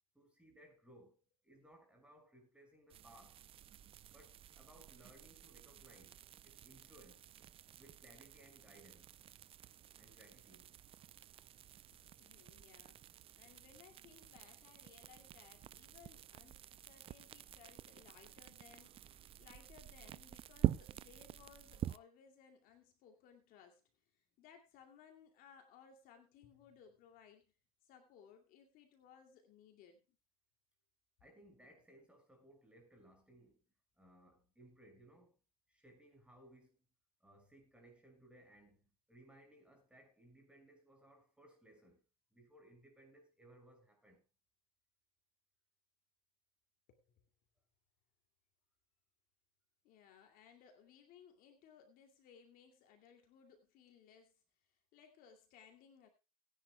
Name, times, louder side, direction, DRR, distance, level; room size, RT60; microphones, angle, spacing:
voice 1, 0.1-3.5 4.1-6.2 6.4-7.3 7.8-9.1 10.0-10.8 31.2-33.6 34.0-35.4 35.7-36.9 37.2-42.0 42.3-44.2, right 1 dB, 5° right, 6.0 m, -63 dB
sound 1, 2.9-22.0, right 11 dB, 30° right, 0.5 m, -47 dB
voice 2, 11.9-27.5 27.8-30.0 46.9-47.2 49.8-56.1, left 7 dB, 50° left, 2.6 m, -63 dB
20.0 x 10.5 x 2.3 m
hypercardioid pair, 105°, 19 cm